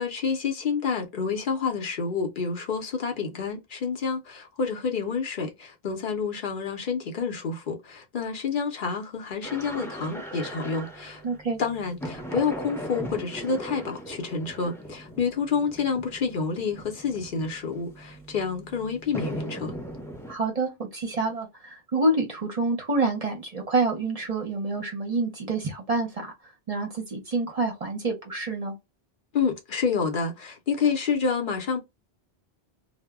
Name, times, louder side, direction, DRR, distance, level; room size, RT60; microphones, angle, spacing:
voice 1, 0.0-11.2 11.6-19.7 29.3-31.8, left 5 dB, 60° left, 0.7 m, -28 dB
sound 1, 9.4-20.4, equal, 5° left, 0.4 m, -39 dB
voice 2, 11.2-11.6 20.3-28.8, right 3 dB, 45° right, 0.6 m, -27 dB
2.0 x 2.0 x 3.3 m
omnidirectional pair, 1.1 m